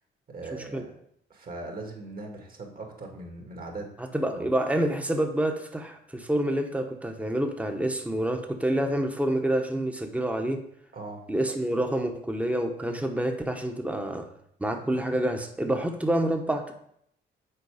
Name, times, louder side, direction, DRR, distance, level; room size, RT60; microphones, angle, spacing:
voice 1, 0.3-0.9 1.3-4.5 10.9-11.3, right 2 dB, 45° right, 2 dB, 2.0 m, -40 dB
voice 2, 4.1-10.6 11.3-14.3 14.6-16.7, right 1 dB, 5° right, 4 dB, 1.0 m, -27 dB
6.9 x 4.7 x 4.9 m, 0.71 s
cardioid pair, 90°, 20 cm